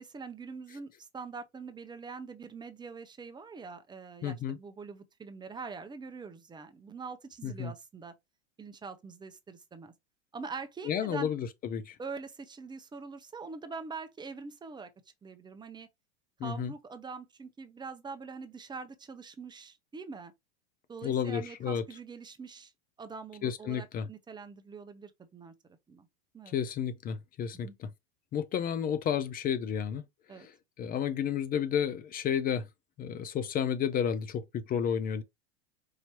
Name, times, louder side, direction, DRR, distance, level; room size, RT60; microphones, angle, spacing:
voice 1, 0.0-8.1 8.6-9.9 10.3-11.3 12.0-14.9 15.2-15.9 16.4-20.3 20.9-22.7 23.0-25.5 25.9-26.1 26.3-26.6 27.5-27.7 30.3-30.5, right 4 dB, 10° right, 0.7 m, -44 dB
voice 2, 4.2-4.6 7.4-7.7 10.8-12.0 16.4-16.7 21.0-21.8 23.4-24.1 26.5-27.9 28.3-30.0 30.4-30.5 30.8-32.7 33.0-35.2, left 8 dB, 25° left, 0.5 m, -31 dB
4.8 x 2.9 x 2.8 m
hypercardioid pair, 105°, 35 cm